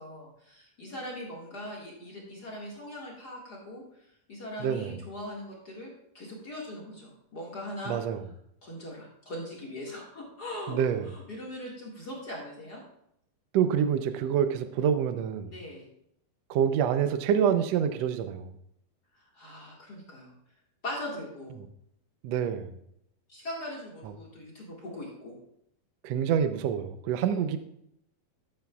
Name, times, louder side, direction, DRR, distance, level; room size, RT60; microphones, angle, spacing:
voice 1, 0.0-8.0 8.6-10.8 11.0-12.8 15.4-15.9 19.1-20.3 20.8-21.6 23.3-25.4 27.2-27.4, left 1 dB, 35° left, -3 dB, 1.9 m, -40 dB
voice 2, 4.6-5.0 7.9-8.2 10.7-11.1 13.5-15.5 16.5-18.5 21.6-21.7 22.2-22.7 26.0-27.6, right 8 dB, 85° right, 9 dB, 1.4 m, -26 dB
12.5 x 8.9 x 2.3 m, 0.75 s
omnidirectional pair, 3.9 m